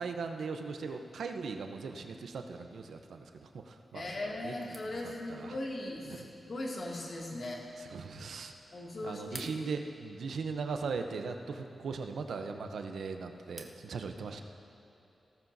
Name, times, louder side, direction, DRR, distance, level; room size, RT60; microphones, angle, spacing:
voice 1, 0.0-4.0 4.4-4.6 4.8-5.0 5.4-5.5 6.1-6.2 7.8-8.5 9.0-14.4, right 4 dB, 85° right, 6 dB, 0.7 m, -39 dB
voice 2, 3.9-7.6 8.7-9.5, left 1 dB, 60° left, -3 dB, 2.3 m, -39 dB
sound 1, 4.6-13.9, right 2 dB, 35° right, 1.1 m, -56 dB
17.5 x 14.0 x 2.7 m, 3.0 s
cardioid pair, 70°, 0 cm